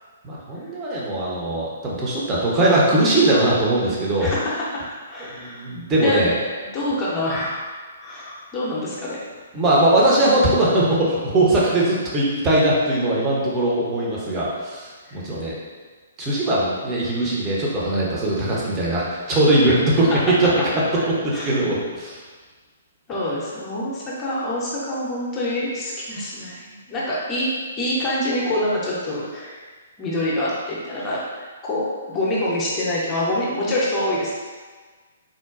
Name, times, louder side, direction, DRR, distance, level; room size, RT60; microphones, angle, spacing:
voice 1, 0.2-4.3 5.3-6.4 9.5-15.6 16.2-20.1 20.4-20.5 21.2-22.2, right 1 dB, 20° right, -5 dB, 0.7 m, -20 dB
voice 2, 4.2-5.7 6.0-6.2 6.7-7.7 8.0-9.2 15.0-15.3 19.6-19.7 21.3-21.6 23.1-27.5 27.8-29.7 30.0-34.3, left 1 dB, 20° left, -6 dB, 0.6 m, -26 dB
3.7 x 2.2 x 2.3 m, 1.4 s
figure-of-eight pair, 125°, 0 cm